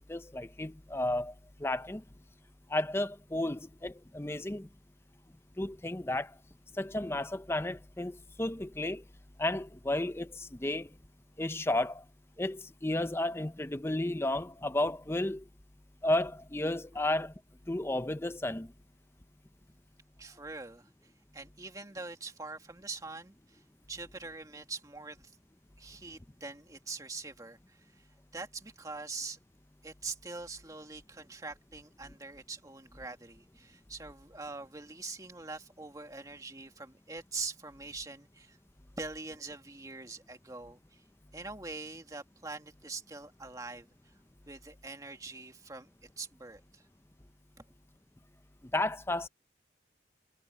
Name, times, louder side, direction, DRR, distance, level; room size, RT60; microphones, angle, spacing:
voice 1, 0.1-1.3 1.6-2.0 2.7-4.7 5.6-6.3 6.8-9.0 9.4-10.9 11.4-12.0 12.4-15.4 16.0-17.3 17.7-18.7 48.7-49.3, left 1 dB, 15° left, 0.6 m, -32 dB
voice 2, 20.2-20.9 21.3-23.6 23.9-25.3 25.8-28.1 28.3-29.4 29.8-41.0 41.3-44.1 44.5-46.8 47.6-47.7, right 3 dB, 20° right, 2.1 m, -44 dB
head